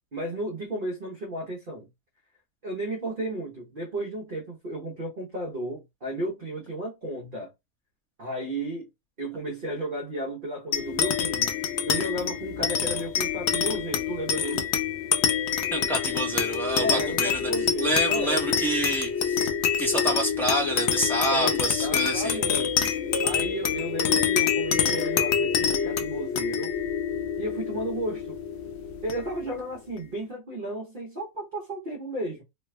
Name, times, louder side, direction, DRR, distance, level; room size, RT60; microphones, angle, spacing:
voice 1, 0.1-1.9 2.6-7.5 8.2-8.9 9.2-14.7 16.7-18.4 21.3-22.9 23.2-26.7 27.4-28.4 29.0-32.4, right 1 dB, 40° right, 1.1 m, -33 dB
sound 1, 10.7-29.6, left 7 dB, 60° left, 0.8 m, -26 dB
voice 2, 15.7-17.5 17.8-19.5 19.8-22.4, right 1 dB, ahead, 0.9 m, -27 dB
3.2 x 2.3 x 3.2 m
omnidirectional pair, 1.5 m